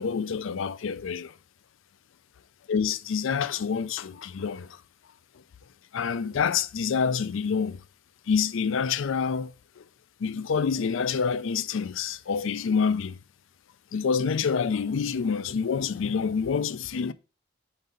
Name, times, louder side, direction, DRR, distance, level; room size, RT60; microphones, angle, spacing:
voice 1, 0.0-1.3 2.7-4.7 5.9-7.8 8.3-9.5 9.8-9.9 10.2-13.2 13.9-17.1, left 6 dB, 75° left, 0.4 m, -27 dB
5.1 x 4.0 x 5.3 m
head